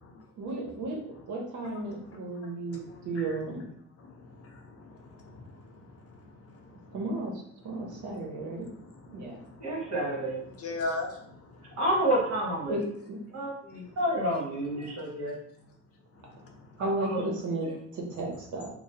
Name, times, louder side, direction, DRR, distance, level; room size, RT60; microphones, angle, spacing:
voice 1, 0.4-1.0 1.3-3.7 6.9-7.3 7.6-8.7 9.1-9.4 12.6-13.2 16.8-18.7, right 2 dB, 75° right, 0 dB, 0.8 m, -34 dB
voice 2, 2.7-3.4 4.0-5.8 7.8-8.1 8.5-9.7 10.5-11.2, left 2 dB, 50° left, 2 dB, 0.7 m, -39 dB
voice 3, 9.6-10.4 11.8-12.8 13.3-15.3 16.8-17.2, right 1 dB, 60° right, -3 dB, 1.3 m, -29 dB
3.0 x 2.0 x 2.8 m, 0.73 s
cardioid pair, 90°, 30 cm